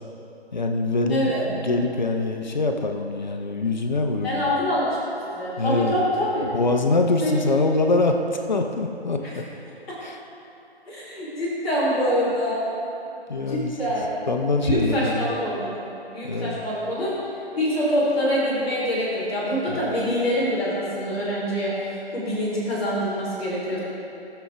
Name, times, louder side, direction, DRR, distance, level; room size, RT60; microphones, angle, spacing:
voice 1, 0.5-4.5 5.6-6.0 6.4-8.2 8.5-9.4 10.0-10.2 13.3-13.8 14.3-15.3 16.2-16.6 19.7-19.8, left 3 dB, 45° left, 4 dB, 0.8 m, -24 dB
voice 2, 1.1-1.4 4.2-4.9 5.2-6.5 7.2-7.7 9.9-10.0 10.9-12.6 13.4-14.1 14.6-15.7 16.1-17.1 17.6-23.8, equal, ahead, -14 dB, 0.7 m, -25 dB
13.0 x 7.0 x 3.4 m, 2.9 s
figure-of-eight pair, 150°, 32 cm